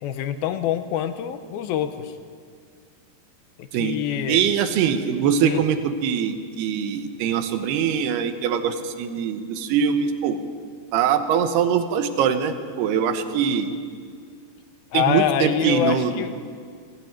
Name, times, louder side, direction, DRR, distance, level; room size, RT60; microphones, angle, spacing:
voice 1, 0.0-2.1 3.6-4.4 5.4-5.7 14.9-16.3, left 10 dB, 75° left, 9 dB, 2.6 m, -25 dB
voice 2, 4.3-10.4 10.9-13.8 14.9-16.2, right 7 dB, 85° right, 8 dB, 3.1 m, -22 dB
20.0 x 15.5 x 8.9 m, 2.1 s
omnidirectional pair, 4.5 m